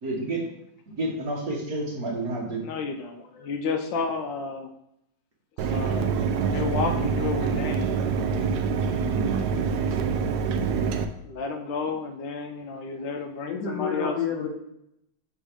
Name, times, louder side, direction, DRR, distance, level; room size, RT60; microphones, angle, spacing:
voice 1, 0.0-0.4 0.9-2.6 9.0-9.6, right 2 dB, 50° right, -2 dB, 1.7 m, -30 dB
voice 2, 2.6-4.7 5.6-7.9 11.2-14.2, left 4 dB, 75° left, 5 dB, 1.2 m, -31 dB
Mechanisms, 5.6-11.0, right 6 dB, 70° right, 1.0 m, -25 dB
voice 3, 13.5-14.5, left 6 dB, 60° left, 1 dB, 1.4 m, -29 dB
6.2 x 4.0 x 4.9 m, 0.79 s
omnidirectional pair, 2.2 m